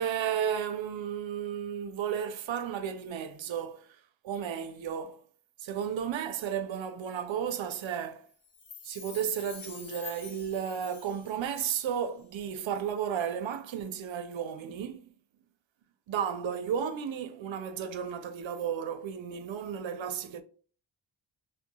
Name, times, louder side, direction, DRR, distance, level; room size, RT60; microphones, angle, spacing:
voice 1, 0.0-3.9 4.2-5.2 5.6-8.2 8.8-15.1 16.1-20.4, right 8 dB, 80° right, 0.6 m, -33 dB
Chime, 8.4-12.1 12.4-12.5, left 6 dB, 80° left, 1.2 m, -48 dB
5.7 x 3.3 x 2.2 m
wide cardioid pair, 105°, 46 cm